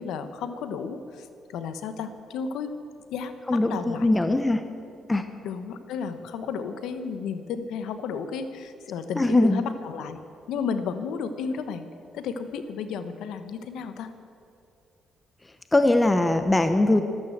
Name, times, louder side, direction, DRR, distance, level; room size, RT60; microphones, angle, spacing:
voice 1, 0.0-2.8 3.1-4.1 5.4-10.2 10.5-11.9 12.1-14.1, left 6 dB, 85° left, 10 dB, 1.0 m, -33 dB
voice 2, 3.5-4.6 5.1-5.2 9.2-9.6 15.7-17.0, left 2 dB, 15° left, 8 dB, 0.8 m, -21 dB
13.0 x 12.5 x 7.9 m, 2.5 s
cardioid pair, 90°, 0 cm